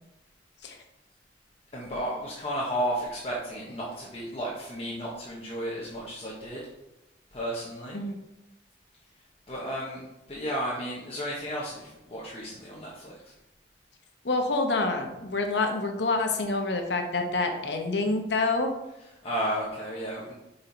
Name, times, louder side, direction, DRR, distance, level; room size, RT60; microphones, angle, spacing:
voice 1, 1.7-6.6 7.3-8.0 9.5-10.0 10.3-13.3 19.2-20.3, equal, 35° left, -5 dB, 1.0 m, -33 dB
voice 2, 14.2-18.7, left 3 dB, 75° left, 4 dB, 0.9 m, -27 dB
5.5 x 4.4 x 4.0 m, 0.92 s
head